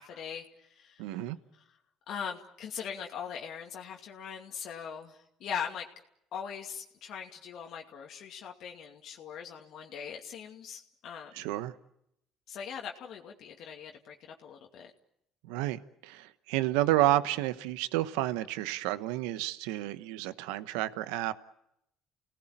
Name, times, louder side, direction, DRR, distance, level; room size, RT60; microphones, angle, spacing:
voice 1, 0.0-1.0 1.6-1.7 2.1-5.9 6.3-11.3 12.5-14.2 14.4-14.9, left 7 dB, 65° left, 1 dB, 2.4 m, -41 dB
voice 2, 1.0-1.4 11.3-11.7 15.4-21.3, right 15 dB, 85° right, 13 dB, 1.0 m, -30 dB
30.0 x 18.5 x 9.1 m, 0.78 s
supercardioid pair, 80°, 0 cm